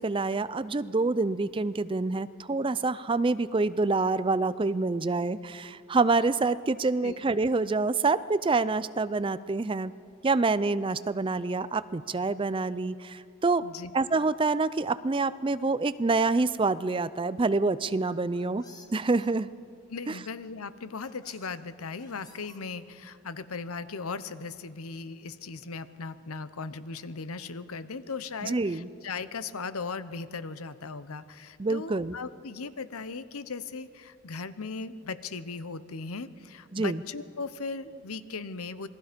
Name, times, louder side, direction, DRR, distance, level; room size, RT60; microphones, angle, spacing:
voice 1, 0.0-9.9 10.2-13.6 13.9-18.6 18.9-19.5 20.1-20.2 28.4-28.9 31.6-32.2 36.7-37.0, right 3 dB, 25° right, 15 dB, 0.4 m, -27 dB
voice 2, 13.6-13.9 19.9-38.9, left 4 dB, 80° left, 14 dB, 0.9 m, -38 dB
sound 1, 18.1-19.3 20.4-20.5 21.0-21.5 22.0-23.0, left 3 dB, 20° left, 1.5 m, -53 dB
27.5 x 20.0 x 5.2 m, 2.4 s
head